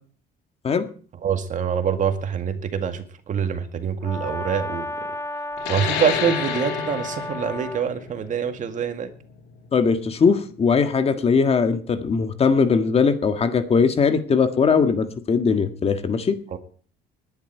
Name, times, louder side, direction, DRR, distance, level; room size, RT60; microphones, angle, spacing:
voice 1, 1.2-5.1 5.7-9.1 16.5-16.6, right 7 dB, 50° right, 8 dB, 2.0 m, -25 dB
Brass instrument, 4.0-7.9, left 1 dB, 15° left, 0.9 m, -32 dB
sound 1, 5.6-10.7, left 7 dB, 85° left, 3.1 m, -31 dB
voice 2, 9.7-16.4, left 5 dB, 35° left, 8 dB, 1.8 m, -20 dB
19.0 x 10.5 x 4.6 m, 0.43 s
cardioid pair, 110°, 17 cm